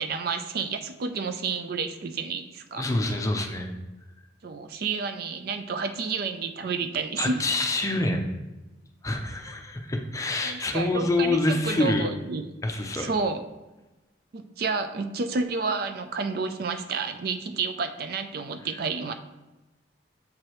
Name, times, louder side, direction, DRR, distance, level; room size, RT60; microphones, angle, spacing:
voice 1, 0.0-2.9 4.4-7.4 10.4-12.5 13.0-13.4 14.3-19.1, right 4 dB, 50° right, 8 dB, 0.4 m, -30 dB
voice 2, 2.8-3.7 7.2-8.3 9.0-12.1 12.6-13.1, left 2 dB, 15° left, 3 dB, 0.5 m, -26 dB
7.0 x 4.7 x 3.0 m, 1.1 s
head